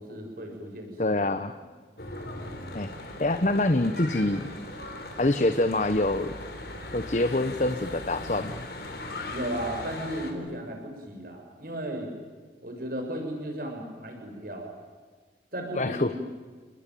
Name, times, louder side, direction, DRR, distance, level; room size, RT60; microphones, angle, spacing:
voice 1, 0.0-1.1 9.3-12.1 12.6-14.7 15.5-16.2, right 1 dB, 50° right, 2 dB, 6.7 m, -35 dB
voice 2, 1.0-1.5 2.7-4.5 5.2-6.3 6.9-8.6 15.8-16.2, left 2 dB, 40° left, 9 dB, 1.0 m, -25 dB
Church bell / Traffic noise roadway noise, 2.0-10.3, left 1 dB, 55° left, 4.0 m, -39 dB
29.5 x 20.5 x 9.2 m, 1.5 s
head